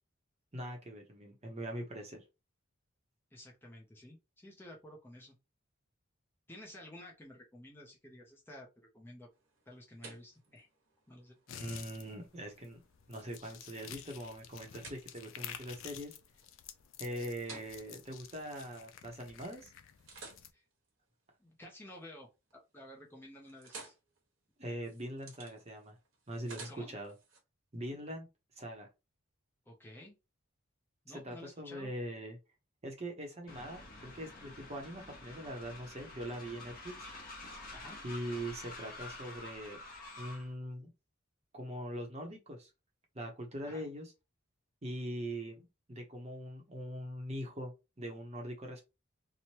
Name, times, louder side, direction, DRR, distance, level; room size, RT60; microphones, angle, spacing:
voice 1, 0.5-2.2 11.5-12.8 13.1-16.1 17.0-19.7 24.6-25.9 26.3-27.1 27.7-28.3 28.6-28.9 31.1-32.4 32.8-36.9 38.0-39.8 40.2-40.9 41.5-42.7 43.1-44.1 44.8-48.9, equal, 30° right, 0.7 m, -42 dB
voice 2, 3.3-5.3 6.5-8.7 8.9-9.3 9.7-10.7 11.1-11.4 20.5-20.6 21.4-23.9 26.7-26.9 29.7-30.1 31.0-31.9 37.7-38.0 43.6-43.9, left 1 dB, 10° left, 0.5 m, -52 dB
sound 1, 9.3-19.3 19.8-22.0 22.4-22.8 23.1-27.4, right 3 dB, 75° right, 1.1 m, -56 dB
sound 2, 11.5-20.5, left 10 dB, 70° left, 0.4 m, -51 dB
Train, 33.5-40.5, left 2 dB, 45° left, 0.8 m, -49 dB
3.0 x 2.1 x 2.8 m
head